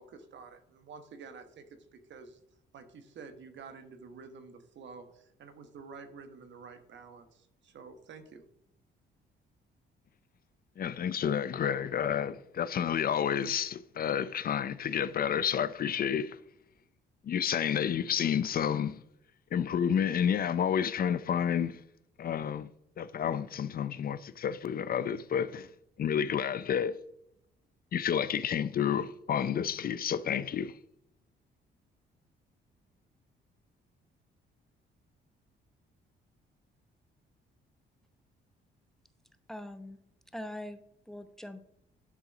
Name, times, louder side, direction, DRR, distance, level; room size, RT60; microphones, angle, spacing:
voice 1, 0.0-2.4 2.7-8.4, right 5 dB, 65° right, 1.4 m, -49 dB
voice 2, 10.8-16.4 17.2-19.0 19.5-21.8 22.2-22.7 23.0-25.7 26.0-27.0 27.9-30.7, left 8 dB, 50° left, 0.5 m, -30 dB
voice 3, 39.5-40.0 40.3-41.6, left 1 dB, ahead, 0.8 m, -42 dB
11.0 x 3.8 x 6.0 m
cardioid pair, 90°, 20 cm